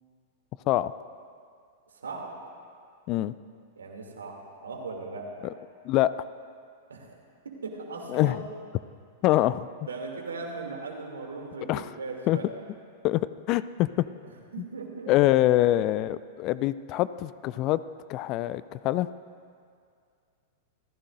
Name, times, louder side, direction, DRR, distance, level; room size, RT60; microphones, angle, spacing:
voice 1, 1.9-2.3 3.8-5.5 6.9-7.2 7.4-8.4 9.8-12.5 14.2-15.2, right 3 dB, 75° right, 1 dB, 2.7 m, -38 dB
voice 2, 9.2-9.7 11.7-11.8 12.3-12.4 13.0-14.1 15.1-17.8 18.1-19.1, left 15 dB, 40° left, 16 dB, 0.4 m, -24 dB
28.0 x 15.0 x 2.6 m, 2.3 s
figure-of-eight pair, 95°, 0 cm